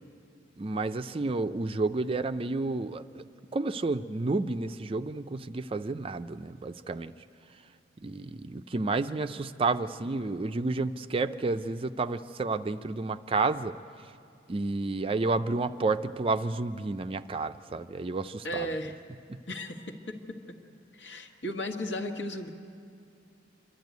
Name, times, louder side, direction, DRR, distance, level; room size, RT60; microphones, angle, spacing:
voice 1, 0.6-3.2 3.5-7.1 8.0-13.8 14.5-18.7 19.3-19.4, right 3 dB, 30° right, 10 dB, 0.4 m, -30 dB
voice 2, 18.4-18.9 19.5-20.2 20.9-22.5, left 1 dB, 70° left, 3 dB, 1.5 m, -35 dB
27.0 x 12.0 x 9.3 m, 2.5 s
head